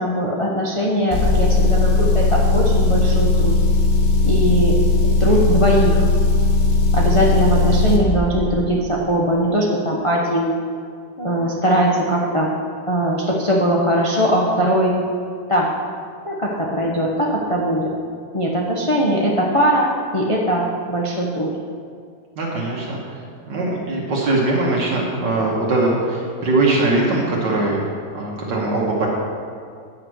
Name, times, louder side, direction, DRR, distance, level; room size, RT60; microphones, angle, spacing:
voice 1, 0.0-3.6 4.2-4.8 5.2-6.1 6.9-10.5 11.2-12.5 12.9-14.9 15.5-15.7 16.2-17.9 18.3-21.5, equal, 30° left, -3 dB, 0.6 m, -20 dB
Motor vehicle (road) / Engine, 1.1-8.0, left 3 dB, 70° left, 1.7 m, -17 dB
voice 2, 22.4-23.0 23.5-27.8 28.1-29.1, right 2 dB, 75° right, -4 dB, 1.9 m, -21 dB
9.8 x 5.8 x 6.2 m, 2.2 s
omnidirectional pair, 1.9 m